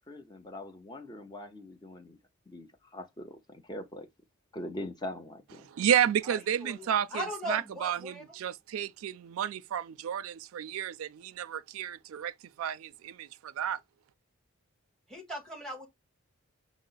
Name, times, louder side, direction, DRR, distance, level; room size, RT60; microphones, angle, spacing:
voice 1, 0.1-2.2 2.5-4.1 4.5-5.7, left 1 dB, 20° left, 0.6 m, -42 dB
voice 2, 5.7-13.8, right 9 dB, 75° right, 0.3 m, -31 dB
voice 3, 6.2-8.4 15.1-15.9, equal, 5° left, 1.2 m, -39 dB
5.2 x 2.0 x 3.8 m
head